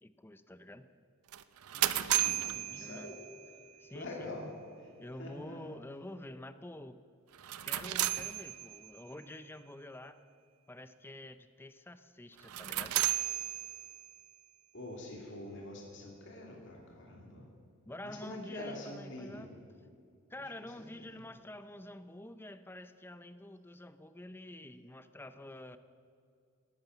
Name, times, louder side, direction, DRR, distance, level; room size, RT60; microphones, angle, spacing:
voice 1, 0.0-0.9 2.5-3.1 3.8-4.3 5.0-7.0 7.6-10.2 10.7-13.0 17.9-19.5 20.3-25.8, left 1 dB, 10° left, 12 dB, 0.5 m, -48 dB
sound 1, 1.3-3.6 7.3-9.0 12.4-14.2, right 14 dB, 80° right, 0.6 m, -34 dB
voice 2, 1.7-3.1 3.9-4.5 4.8-4.9 5.2-5.8 14.7-17.5 18.0-19.5 20.4-20.5 20.8-21.2, left 1 dB, 55° left, -1 dB, 2.5 m, -46 dB
12.5 x 11.5 x 9.1 m, 2.3 s
head